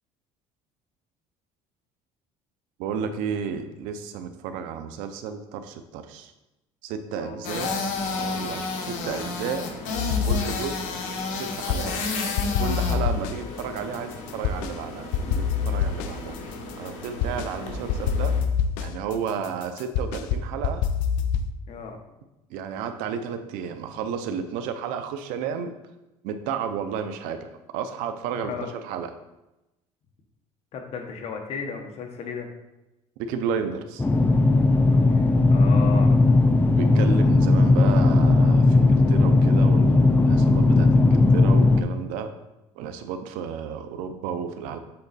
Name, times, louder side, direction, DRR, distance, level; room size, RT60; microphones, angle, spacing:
voice 1, 2.8-6.3 6.8-7.7 8.1-9.6 10.2-10.8 11.4-12.0 12.6-16.4 16.8-18.3 18.8-20.8 22.5-25.7 26.2-27.4 27.7-28.5 28.8-29.1 33.2-34.0 36.8-42.3 42.8-44.8, right 7 dB, 85° right, 8 dB, 0.7 m, -32 dB
voice 2, 7.1-7.6 21.7-22.0 28.3-28.7 30.7-32.5 35.1-36.2, left 5 dB, 50° left, 3 dB, 1.2 m, -35 dB
sound 1, 7.4-18.4, left 3 dB, 70° left, 1.2 m, -32 dB
sound 2, 10.0-10.9 11.2-12.1 12.4-14.8 15.1-17.5 17.9-21.5, left 7 dB, 90° left, 0.5 m, -26 dB
sound 3, 34.0-41.8, left 2 dB, 15° left, 0.4 m, -17 dB
7.6 x 3.9 x 4.2 m, 0.97 s
cardioid pair, 130°, 14 cm